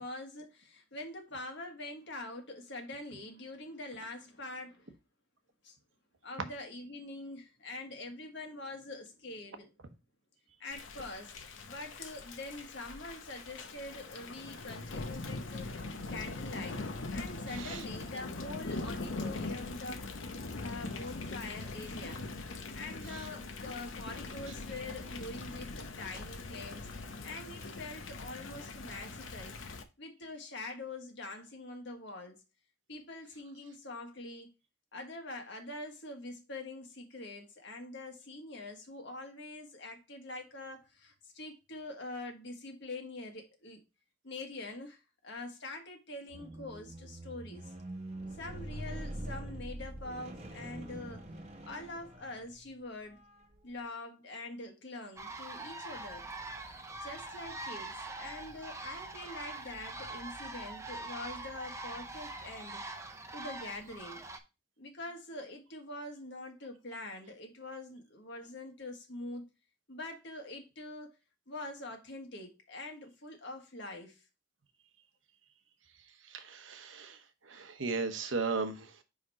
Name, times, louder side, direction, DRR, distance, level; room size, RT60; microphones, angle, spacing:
voice 1, 0.0-4.9 5.6-5.7 6.2-9.7 10.6-16.8 17.1-20.1 20.6-22.3 22.7-26.9 27.2-29.5 30.0-32.4 32.9-34.5 34.9-43.8 44.2-47.7 48.3-51.2 51.6-53.2 53.6-56.3 56.6-62.8 63.3-64.2 64.8-69.5 69.9-71.1 71.5-74.2, left 2 dB, 65° left, 1.5 m, -44 dB
Thunder / Rain, 10.7-29.8, left 3 dB, 85° left, 0.8 m, -42 dB
voice 2, 17.5-17.8 23.1-23.2 76.2-79.0, right 4 dB, 80° right, 0.9 m, -36 dB
Squeak, 46.3-52.7 53.4-53.6, right 1 dB, 35° right, 1.0 m, -44 dB
sound 1, 55.2-64.4, right 2 dB, 15° right, 0.7 m, -43 dB
5.1 x 4.9 x 4.2 m
head